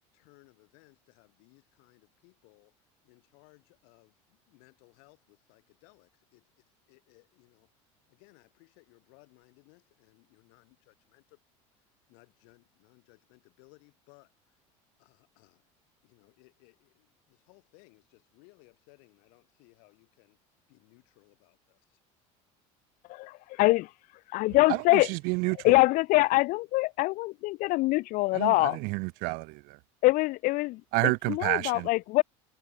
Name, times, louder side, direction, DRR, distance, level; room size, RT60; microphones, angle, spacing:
voice 1, 0.1-2.8 3.0-7.7 8.1-11.4 12.1-14.6 15.0-15.7 16.0-20.4 20.7-22.0, left 40 dB or more, 75° left, 6.2 m, -62 dB
voice 2, 23.1-23.9 24.3-25.1 25.5-28.8 30.0-32.2, left 20 dB, 60° left, 0.6 m, -24 dB
voice 3, 25.1-25.6 28.3-28.5 28.8-29.6 30.9-31.9, right 29 dB, 65° right, 0.4 m, -28 dB
supercardioid pair, 110°, 16 cm